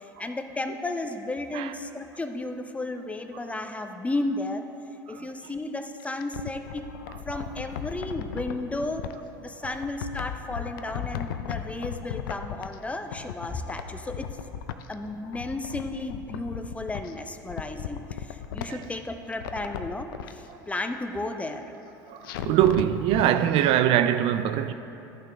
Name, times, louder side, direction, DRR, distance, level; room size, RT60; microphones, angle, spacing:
voice 1, 0.0-4.6 5.1-6.9 7.2-9.1 9.4-14.3 14.9-21.6, left 2 dB, 10° left, 0.6 m, -33 dB
sound 1, 6.0-9.1 9.6-12.8 13.1-14.9 15.2-17.1 17.5-19.0 19.3-20.3 22.2-23.3 23.6-23.7, left 9 dB, 70° left, 0.4 m, -36 dB
voice 2, 22.1-24.7, right 11 dB, 50° right, 0.4 m, -23 dB
13.5 x 5.6 x 3.4 m
hypercardioid pair, 75°, 12 cm